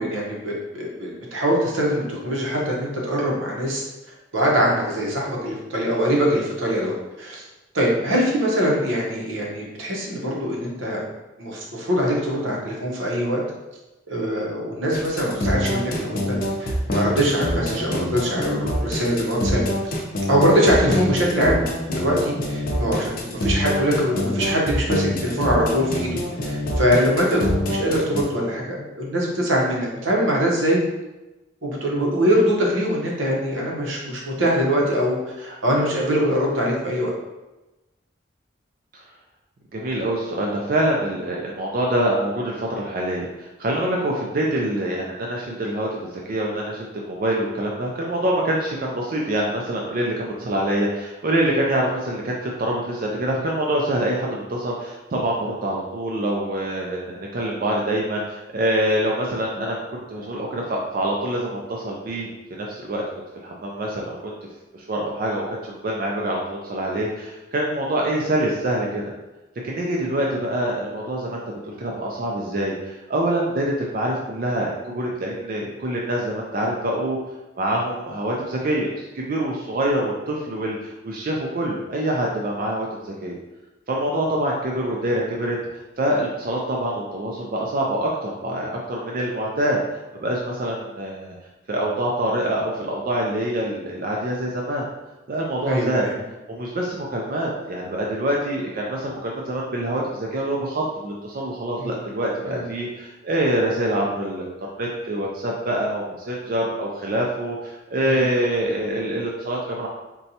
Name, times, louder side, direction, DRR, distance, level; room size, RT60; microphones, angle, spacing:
voice 1, 0.0-3.8 4.3-7.4 7.7-11.0 11.4-13.4 14.1-19.6 20.3-21.6 21.9-26.1 26.4-30.8 31.6-37.1 95.6-96.1 101.8-101.9 102.5-102.6 108.0-108.3, equal, 85° right, -2 dB, 0.8 m, -23 dB
sound 1, 14.9-28.2, left 1 dB, 50° left, 0.5 m, -25 dB
voice 2, 39.7-63.0 63.4-64.3 64.7-69.0 69.6-77.2 77.6-83.4 83.9-85.6 86.0-89.8 90.1-91.3 91.7-94.8 95.3-96.1 96.5-104.5 104.8-109.9, right 1 dB, 45° right, -2 dB, 0.4 m, -25 dB
4.0 x 2.2 x 2.7 m, 1.1 s
head